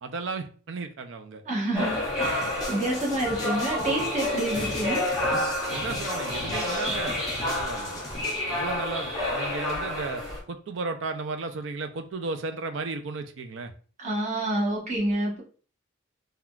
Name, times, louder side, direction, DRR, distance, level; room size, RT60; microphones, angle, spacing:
voice 1, 0.0-1.4 5.7-8.0 8.5-13.7, right 4 dB, 60° right, 8 dB, 0.4 m, -34 dB
voice 2, 1.4-5.0 14.0-15.4, right 1 dB, 35° right, -3 dB, 0.9 m, -28 dB
sound 1, 1.7-10.4, left 1 dB, ahead, 1.1 m, -29 dB
sound 2, 2.2-8.4, left 2 dB, 15° left, 0.5 m, -39 dB
3.5 x 2.2 x 2.3 m, 0.40 s
head